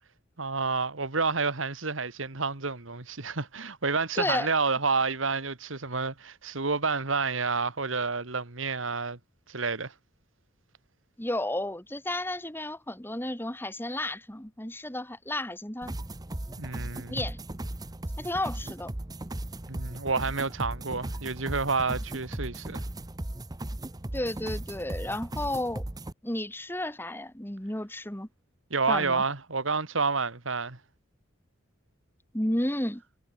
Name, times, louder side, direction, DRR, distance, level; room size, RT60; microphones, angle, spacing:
voice 1, 0.4-9.2 9.5-9.9 16.6-17.3 19.7-22.8 28.7-30.8, right 4 dB, 80° right, 2.1 m, -29 dB
voice 2, 4.2-4.5 11.2-15.9 17.1-17.4 18.2-18.9 24.1-25.8 26.2-28.3 28.9-29.2 32.3-33.0, left 1 dB, 10° left, 2.0 m, -32 dB
sound 1, 15.8-26.1, right 1 dB, 20° right, 0.9 m, -37 dB
head